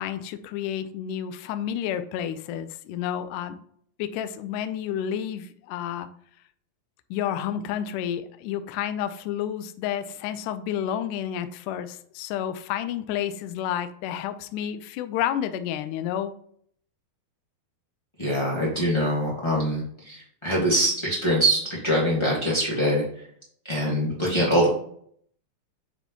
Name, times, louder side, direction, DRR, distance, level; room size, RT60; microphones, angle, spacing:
voice 1, 0.0-3.6 4.0-6.1 7.1-16.3, left 10 dB, 90° left, 9 dB, 1.8 m, -30 dB
voice 2, 18.2-23.0 23.7-24.7, equal, 50° left, -6 dB, 0.3 m, -23 dB
8.9 x 4.1 x 3.0 m, 0.63 s
omnidirectional pair, 4.3 m